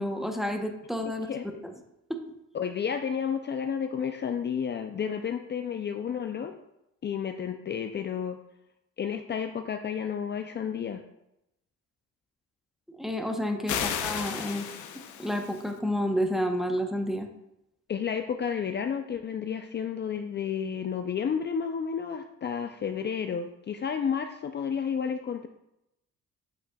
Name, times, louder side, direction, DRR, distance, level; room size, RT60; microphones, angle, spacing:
voice 1, 0.0-1.3 2.1-2.2 13.0-14.7 15.2-17.3, equal, ahead, 4 dB, 0.8 m, -30 dB
voice 2, 1.3-1.6 2.5-6.5 7.0-8.4 9.0-11.0 17.9-25.5, left 7 dB, 35° left, 6 dB, 0.4 m, -31 dB
sound 1, 13.7-15.7, left 8 dB, 80° left, 0.7 m, -33 dB
8.4 x 6.0 x 2.3 m, 0.86 s
cardioid pair, 90°, 30 cm